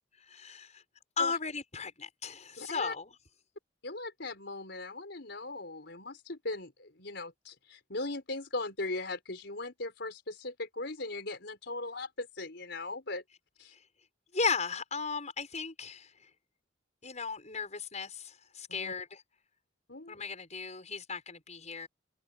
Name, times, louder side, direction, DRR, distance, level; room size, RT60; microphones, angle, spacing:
voice 1, 0.3-0.8 1.2-3.1 14.3-16.3 17.0-19.2 20.1-21.9, left 5 dB, 40° left, 6.6 m, -36 dB
voice 2, 2.6-2.9 3.8-13.2 13.6-13.7 18.8-18.9 19.9-20.1, left 2 dB, 65° left, 5.3 m, -39 dB
head